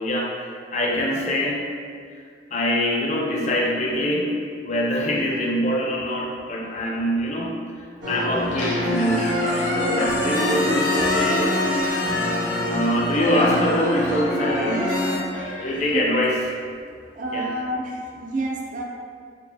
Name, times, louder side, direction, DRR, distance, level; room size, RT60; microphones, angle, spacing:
voice 1, 0.0-1.6 2.5-4.4 4.6-11.6 12.7-14.9 15.6-16.5 17.3-17.5, equal, 40° left, -2 dB, 0.5 m, -24 dB
sound 1, 8.0-15.2, left 1 dB, 70° right, 1.1 m, -25 dB
Squeak, 8.4-16.6, left 1 dB, 80° left, 0.7 m, -30 dB
voice 2, 17.1-18.8, right 1 dB, 45° right, -1 dB, 0.4 m, -29 dB
4.5 x 2.3 x 2.7 m, 2.2 s
head